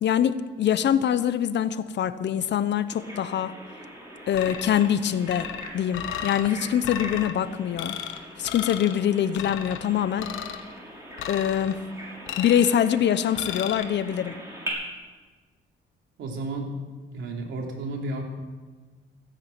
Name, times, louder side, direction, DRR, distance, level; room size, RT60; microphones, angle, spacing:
voice 1, 0.0-3.5 4.3-5.5 5.7-8.0 8.4-10.3 11.3-11.8 12.4-14.3, left 9 dB, 60° left, 14 dB, 0.9 m, -24 dB
Bird vocalization bird call bird song, 2.9-14.7, right 1 dB, 15° right, 6.3 m, -42 dB
sound 1, 4.3-4.9 5.3-6.5 6.8-7.3 7.8-8.2 8.5-9.0 9.4-9.8 10.2-10.6 11.2-11.8 12.3-12.8 13.4-13.8, left 10 dB, 85° left, 1.2 m, -34 dB
voice 2, 16.2-16.7 17.1-18.2, right 2 dB, 75° right, 1 dB, 3.3 m, -32 dB
16.0 x 10.5 x 8.2 m, 1.4 s
cardioid pair, 90°, 20 cm